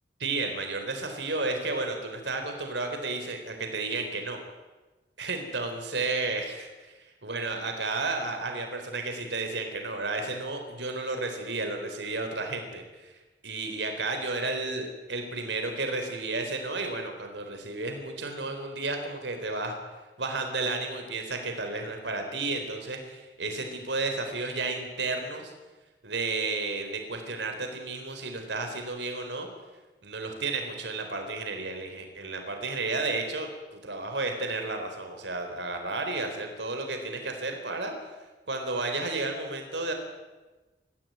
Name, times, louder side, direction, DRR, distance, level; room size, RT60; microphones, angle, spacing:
voice 1, 0.2-4.4 5.2-13.2 13.4-19.8 20.2-25.5 26.0-29.5 30.0-37.9 38.5-39.9, right 3 dB, 70° right, 5 dB, 4.1 m, -32 dB
22.5 x 15.5 x 9.5 m, 1.2 s
head